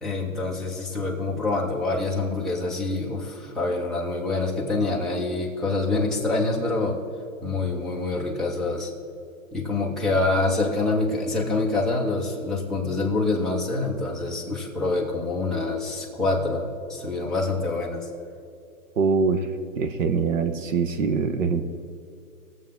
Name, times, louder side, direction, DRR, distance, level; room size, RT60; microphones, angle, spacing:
voice 1, 0.0-7.0 7.4-8.9 9.5-16.6 16.9-18.1, left 3 dB, ahead, -5 dB, 0.6 m, -26 dB
voice 2, 19.0-19.5 19.8-21.6, right 5 dB, 60° right, 8 dB, 1.2 m, -23 dB
19.5 x 7.6 x 3.7 m, 2.5 s
hypercardioid pair, 155°, 44 cm